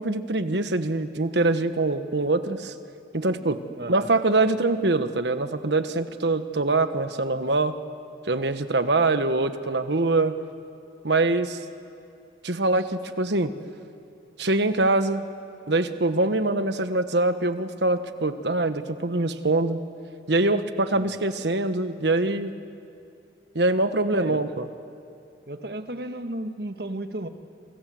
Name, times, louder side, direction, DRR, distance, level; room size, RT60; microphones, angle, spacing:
voice 1, 0.0-2.7 3.1-3.6 3.9-7.7 8.3-10.3 11.0-11.6 12.4-13.5 14.4-15.2 15.7-19.8 20.3-22.5 23.5-24.6, right 2 dB, 75° right, 10 dB, 1.3 m, -24 dB
voice 2, 3.8-4.1 20.9-21.1 24.1-24.6 25.5-27.3, right 1 dB, 60° right, 8 dB, 1.4 m, -34 dB
28.5 x 25.5 x 7.8 m, 2.5 s
head